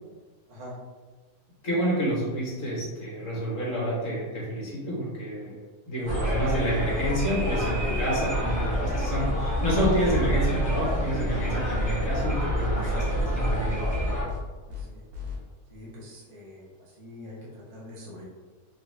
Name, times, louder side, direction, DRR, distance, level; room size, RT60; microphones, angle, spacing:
voice 1, 1.6-5.6 5.9-13.8, equal, 55° left, -6 dB, 1.7 m, -29 dB
sound 1, 6.1-14.2, equal, 5° left, 0.8 m, -27 dB
sound 2, 8.7-8.8 9.1-9.3 9.5-9.7 10.0-10.1 10.4-10.6 10.8-11.0 11.3-11.4 11.7-12.3 12.5-12.7 13.0-13.1 13.4-13.6 13.8-14.0 14.3-14.4 14.7-14.8 15.1-15.3, left 8 dB, 75° right, 1.5 m, -37 dB
voice 2, 14.7-15.0 15.7-18.3, left 1 dB, 30° right, -7 dB, 1.0 m, -44 dB
4.0 x 2.4 x 3.3 m, 1.3 s
omnidirectional pair, 1.6 m